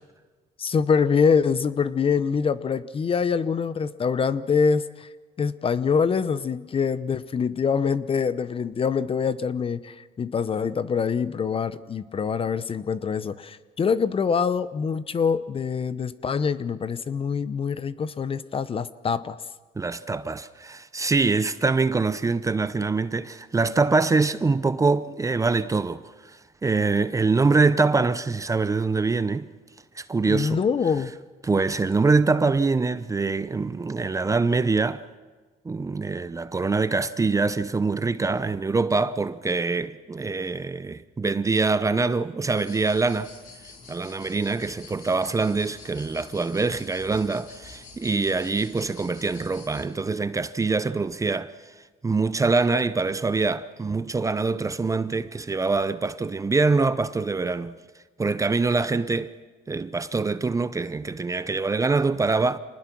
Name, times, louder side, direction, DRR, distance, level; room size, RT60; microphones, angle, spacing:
voice 1, 0.6-5.1 5.4-19.4 30.3-31.1, left 6 dB, 35° left, 0.8 m, -25 dB
voice 2, 19.8-29.5 29.9-30.6 31.4-35.0 35.6-43.4 43.9-57.8 58.2-59.4 59.7-62.6, right 3 dB, 20° right, 0.7 m, -24 dB
sound 1, 42.5-49.9, left 4 dB, 50° left, 4.7 m, -47 dB
26.5 x 19.5 x 6.1 m
cardioid pair, 110°, 17 cm